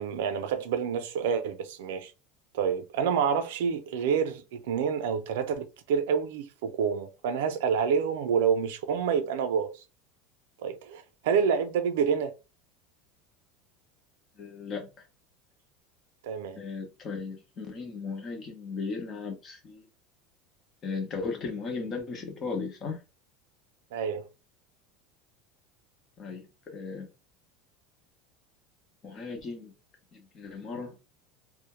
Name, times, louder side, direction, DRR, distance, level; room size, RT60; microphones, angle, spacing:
voice 1, 0.0-2.1 2.5-9.7 10.6-12.3 16.2-16.6 23.9-24.3, right 7 dB, 85° right, 0.5 m, -28 dB
voice 2, 14.4-15.0 16.6-19.9 20.8-23.0 26.2-27.1 29.0-29.7 30.1-31.0, left 4 dB, 30° left, 0.8 m, -36 dB
2.3 x 2.1 x 2.9 m
supercardioid pair, 150°, 0 cm